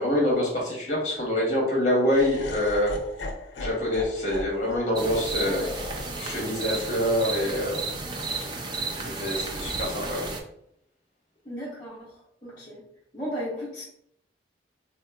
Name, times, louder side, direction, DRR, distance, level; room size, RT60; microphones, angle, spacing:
voice 1, 0.0-3.0 3.6-5.6 6.2-7.8 8.2-8.4 9.0-10.3, left 1 dB, 40° left, -3 dB, 1.2 m, -26 dB
Laughter, 2.1-8.2, left 2 dB, 80° left, 0.5 m, -40 dB
sound 1, 4.9-10.4, right 3 dB, 25° right, 0.3 m, -33 dB
voice 2, 5.4-5.9 11.4-12.8 13.1-13.8, equal, 25° left, -9 dB, 0.7 m, -36 dB
3.5 x 2.8 x 2.2 m, 0.72 s
head